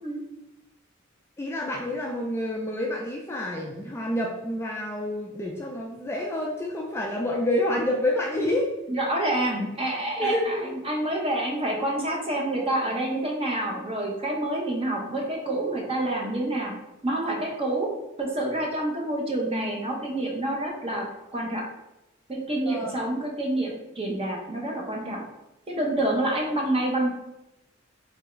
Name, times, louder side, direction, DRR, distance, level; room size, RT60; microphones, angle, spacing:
voice 1, 1.4-8.7 10.2-10.7 22.6-22.9, left 1 dB, 10° left, -1 dB, 0.3 m, -28 dB
voice 2, 8.9-16.7 17.0-17.9 18.2-21.1 21.3-21.6 22.3-25.2 25.7-27.1, right 1 dB, 30° right, -1 dB, 0.7 m, -27 dB
3.5 x 3.3 x 3.0 m, 0.94 s
head